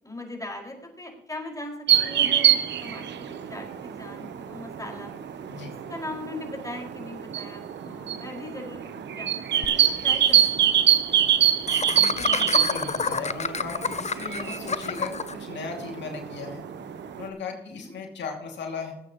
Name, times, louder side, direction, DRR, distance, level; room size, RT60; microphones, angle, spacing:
voice 1, 0.0-5.1 5.9-11.6 17.5-18.0, left 1 dB, 20° left, 1 dB, 5.5 m, -40 dB
sound 1, 1.9-17.3, right 10 dB, 80° right, 0.9 m, -25 dB
Laughter, 9.6-9.7 10.0-10.1 10.3-10.5 11.7-15.3, left 5 dB, 40° left, 0.7 m, -29 dB
voice 2, 11.9-16.6 17.2-18.9, left 4 dB, 80° left, 2 dB, 2.5 m, -37 dB
19.5 x 8.5 x 3.1 m, 0.81 s
supercardioid pair, 45°, 18 cm